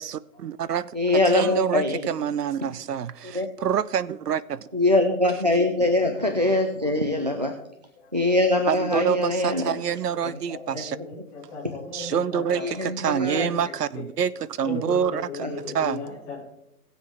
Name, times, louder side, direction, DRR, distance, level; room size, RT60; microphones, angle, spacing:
voice 1, 0.0-0.9 1.3-4.7 8.7-11.0 11.9-15.5 15.7-16.0, right 8 dB, 85° right, 19 dB, 0.7 m, -27 dB
voice 2, 0.9-2.0 3.2-3.5 4.7-7.5 8.1-9.8 10.8-10.9 12.6-13.5 15.4-15.5, left 2 dB, 30° right, 4 dB, 0.4 m, -23 dB
voice 3, 10.1-12.8 13.1-13.5 13.9-14.0 14.6-16.4, left 4 dB, 5° left, -4 dB, 0.8 m, -37 dB
19.5 x 7.3 x 3.5 m, 0.81 s
hypercardioid pair, 165°, 46 cm